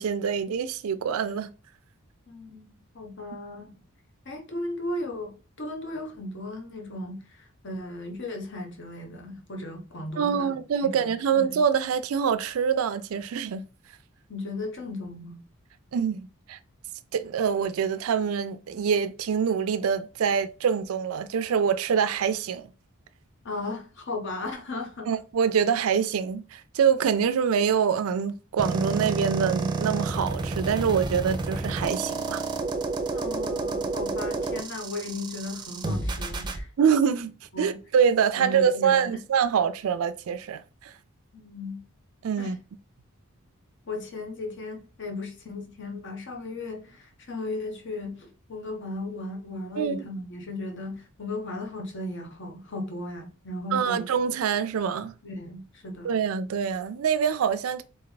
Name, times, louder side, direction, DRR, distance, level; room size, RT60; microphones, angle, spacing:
voice 1, 0.0-1.5 10.2-13.6 15.9-16.6 17.1-22.6 25.1-32.4 36.8-40.9 42.2-42.6 49.8-50.1 53.7-55.1 56.0-57.8, right 7 dB, 75° right, 0.4 m, -25 dB
voice 2, 2.3-3.7 4.2-10.6 10.8-11.6 14.3-15.4 23.4-25.1 33.1-36.7 37.5-37.8 38.4-39.2 41.3-41.8 42.4-42.6 43.9-54.1 55.2-56.1, left 2 dB, 55° left, 1.0 m, -36 dB
sound 1, 28.6-36.6, right 3 dB, 20° right, 0.5 m, -30 dB
3.9 x 3.3 x 4.0 m
head